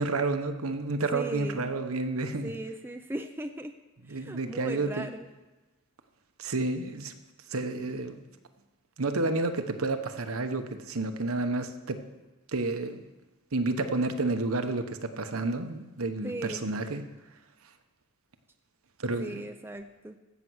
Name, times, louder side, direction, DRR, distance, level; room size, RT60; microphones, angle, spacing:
voice 1, 0.0-2.5 4.1-5.1 6.4-7.1 7.5-8.2 9.0-12.0 12.5-13.0 13.5-17.0 19.0-19.4, right 3 dB, 75° right, 7 dB, 1.0 m, -30 dB
voice 2, 1.1-1.8 2.4-3.7 4.1-5.3 16.2-16.8 19.2-20.2, right 1 dB, 10° right, 5 dB, 0.5 m, -37 dB
15.5 x 6.8 x 6.2 m, 1.2 s
head